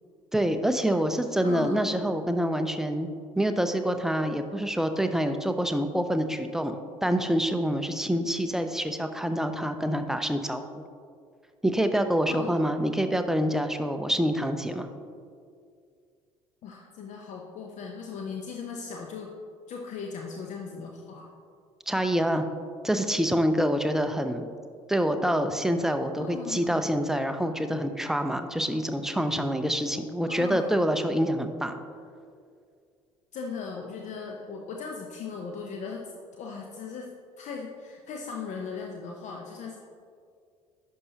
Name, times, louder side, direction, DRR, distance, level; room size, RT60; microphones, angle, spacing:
voice 1, 0.3-3.1 3.4-10.8 11.6-14.9 21.9-22.4 22.8-24.5 24.9-31.8, equal, 5° right, 7 dB, 0.5 m, -26 dB
voice 2, 1.4-1.9 12.3-12.6 16.6-19.3 19.7-21.3 26.2-26.9 30.2-30.9 33.3-37.1 37.4-39.8, left 5 dB, 45° left, 1 dB, 0.7 m, -38 dB
11.0 x 5.5 x 2.9 m, 2.2 s
figure-of-eight pair, 55°, 17 cm